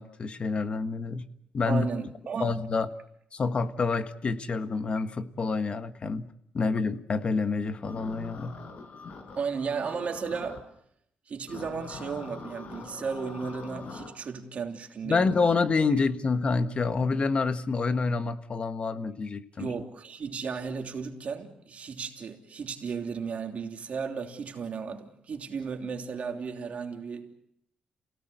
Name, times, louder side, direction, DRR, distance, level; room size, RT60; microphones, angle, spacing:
voice 1, 0.0-1.9 2.4-2.9 3.3-8.6 15.0-19.7, left 4 dB, 40° left, 1.5 m, -28 dB
voice 2, 1.7-2.6 9.4-10.6 11.3-15.5 19.6-27.3, right 5 dB, 50° right, 3.2 m, -35 dB
sound 1, 7.8-10.6 11.5-14.1, left 4 dB, 55° left, 5.1 m, -43 dB
28.0 x 18.0 x 8.0 m
cardioid pair, 90°, 3 cm